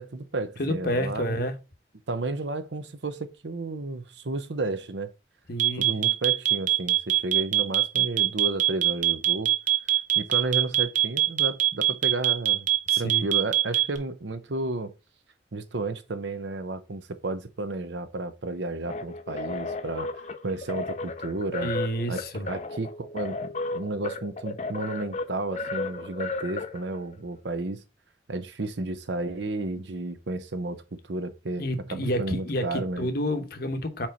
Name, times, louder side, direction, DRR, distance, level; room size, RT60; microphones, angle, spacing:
voice 1, 0.0-1.5 2.1-5.1 5.8-9.5 10.2-12.7 13.0-14.9 15.5-20.1 20.4-21.7 22.1-27.8 28.3-31.6 31.9-33.1, right 2 dB, 70° right, 0.8 m, -32 dB
voice 2, 0.6-1.6 5.5-6.0 12.9-13.3 21.6-22.5 31.6-34.1, equal, 55° left, 1.0 m, -29 dB
sound 1, 5.6-14.0, right 14 dB, 45° right, 0.9 m, -22 dB
sound 2, 18.9-27.1, left 3 dB, 40° left, 0.5 m, -34 dB
4.5 x 4.4 x 5.0 m
head